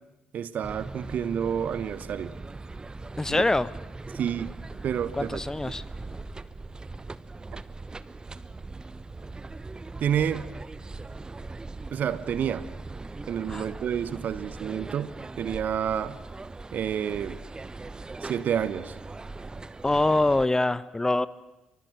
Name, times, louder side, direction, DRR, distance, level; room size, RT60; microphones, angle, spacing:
voice 1, 0.3-2.4 3.3-3.4 4.1-4.5 4.8-5.4 10.0-10.5 11.9-12.7 13.3-16.2 16.7-17.4 18.2-18.9, right 8 dB, 55° right, 1.0 m, -29 dB
sound 1, 0.6-20.5, right 3 dB, 25° right, 1.0 m, -40 dB
voice 2, 3.2-3.7 5.2-5.8 13.5-13.7 19.8-21.3, left 2 dB, 15° left, 0.9 m, -24 dB
27.0 x 24.0 x 6.2 m
figure-of-eight pair, 40°, 3 cm